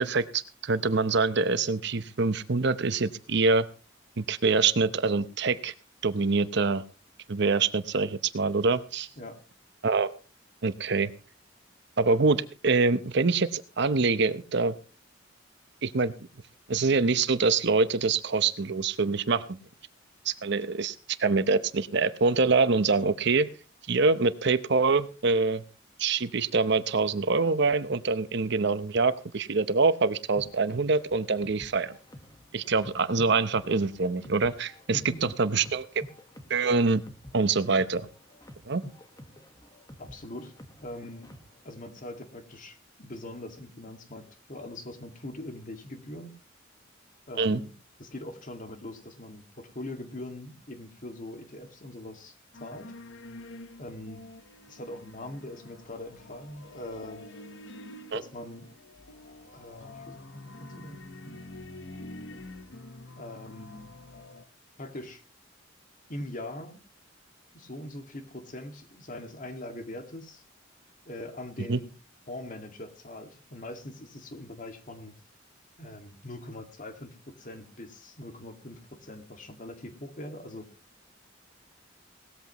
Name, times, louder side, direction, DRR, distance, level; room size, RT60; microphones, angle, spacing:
voice 1, 0.0-3.7 4.2-5.7 6.0-6.8 7.3-9.1 9.8-10.1 10.6-11.1 12.0-14.7 15.8-16.1 16.7-19.6 20.2-23.5 23.9-25.6 26.0-31.9 32.5-35.8 36.5-37.0 37.3-38.1 38.7-38.8 47.4-47.6 58.1-58.2 71.7-71.8, right 4 dB, 60° right, 13 dB, 0.8 m, -25 dB
sound 1, 30.4-41.6, equal, 20° left, 1.4 m, -50 dB
voice 2, 34.9-35.3 40.0-40.5 40.8-41.3 41.6-46.3 47.3-47.7 48.0-52.9 53.8-54.2 54.7-57.3 58.1-58.7 59.5-61.4 63.2-63.9 64.8-65.2 66.1-66.8 67.5-70.4 71.1-71.9 72.3-75.1 75.8-80.7, left 1 dB, 40° left, 6 dB, 2.1 m, -42 dB
sound 2, 52.5-64.5, left 2 dB, 65° left, 1.1 m, -47 dB
18.5 x 14.0 x 3.0 m, 0.34 s
head